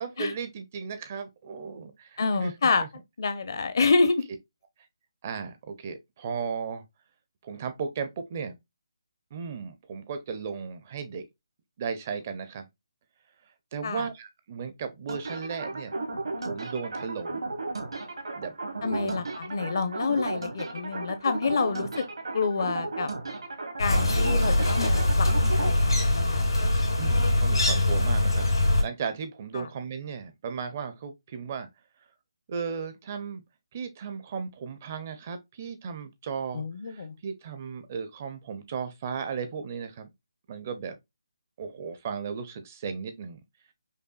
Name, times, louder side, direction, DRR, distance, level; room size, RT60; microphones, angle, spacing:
voice 1, 0.0-2.5 2.8-2.9 5.2-6.8 7.4-8.5 9.3-11.2 11.8-12.7 13.7-15.9 16.4-17.4 18.3-18.5 18.8-19.1 27.0-31.7 32.5-33.4 33.7-40.1 40.5-41.0 41.6-43.4, right 6 dB, 25° right, 0.4 m, -35 dB
voice 2, 2.2-2.8 3.2-4.3 13.8-14.1 18.8-21.9 22.3-23.1 23.8-25.3 25.6-26.5 29.5-29.7 36.5-37.1, left 4 dB, 50° left, 0.6 m, -27 dB
sound 1, 15.1-25.7, right 3 dB, 80° right, 1.1 m, -34 dB
sound 2, 23.8-28.8, left 1 dB, 85° left, 2.1 m, -23 dB
5.3 x 2.2 x 2.3 m
hypercardioid pair, 165°, 3 cm